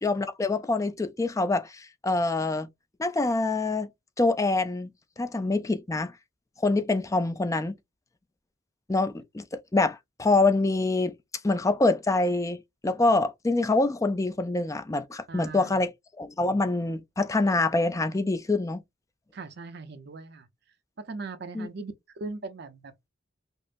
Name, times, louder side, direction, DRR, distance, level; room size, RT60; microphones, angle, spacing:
voice 1, 0.0-2.7 3.0-3.9 4.2-4.9 5.2-6.1 6.6-7.7 8.9-11.1 11.4-15.9 16.2-18.8 21.5-21.7, left 2 dB, 15° left, 0.4 m, -25 dB
voice 2, 15.3-15.9 19.3-20.5 21.0-23.1, right 3 dB, 60° right, 0.6 m, -39 dB
5.3 x 2.0 x 2.5 m
head